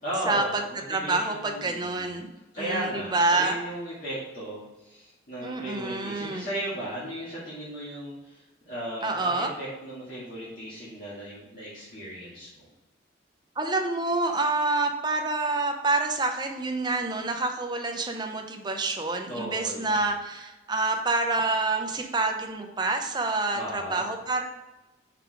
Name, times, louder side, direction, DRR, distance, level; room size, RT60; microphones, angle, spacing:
voice 1, 0.0-2.2 2.5-12.7 19.3-20.1 22.0-22.1 23.5-24.0, right 1 dB, 45° left, -9 dB, 2.0 m, -36 dB
voice 2, 0.9-2.3 2.6-3.6 5.4-6.5 9.0-9.5 13.6-24.4, right 3 dB, 20° right, 3 dB, 0.7 m, -27 dB
5.5 x 4.7 x 4.8 m, 1.1 s
head